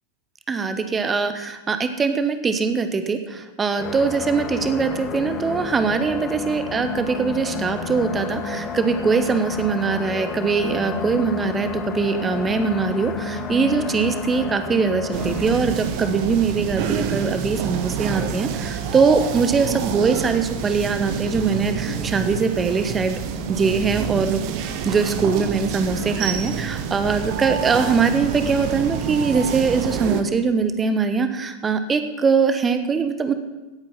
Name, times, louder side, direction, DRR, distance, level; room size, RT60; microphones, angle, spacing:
voice 1, 0.5-23.2 23.5-24.4 24.8-33.3, right 5 dB, 20° right, 9 dB, 1.0 m, -22 dB
sound 1, 3.8-15.6, left 4 dB, 25° left, 1.2 m, -30 dB
sound 2, 15.1-30.2, right 7 dB, 45° right, 1.0 m, -28 dB
17.0 x 8.6 x 5.8 m, 1.1 s
figure-of-eight pair, 90°, 0 cm